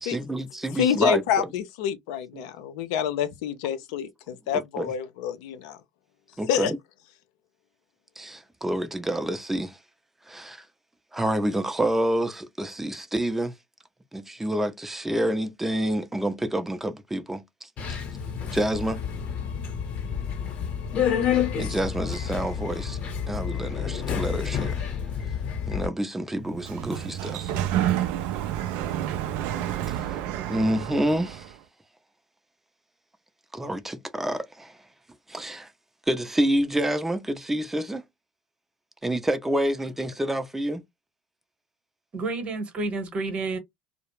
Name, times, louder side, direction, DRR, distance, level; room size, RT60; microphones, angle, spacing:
voice 1, 0.0-1.5 2.3-2.4 4.5-4.9 6.4-6.8 8.2-9.8 10.3-10.6 11.1-13.5 14.1-17.7 18.5-19.0 21.6-23.0 23.3-24.8 25.7-27.5 29.9-30.2 30.5-31.5 33.5-34.8 35.3-35.7 36.1-38.0 39.0-40.8, right 1 dB, 10° right, 0.5 m, -28 dB
voice 2, 0.8-5.8 6.5-6.7, left 8 dB, 65° left, 0.4 m, -27 dB
Subway metro underground, 17.8-25.9, left 8 dB, 50° left, 0.9 m, -29 dB
Sliding door, 26.4-31.5, right 11 dB, 60° right, 0.4 m, -29 dB
voice 3, 42.1-43.6, right 3 dB, 40° right, 1.0 m, -30 dB
2.3 x 2.0 x 3.1 m
hypercardioid pair, 70°, 3 cm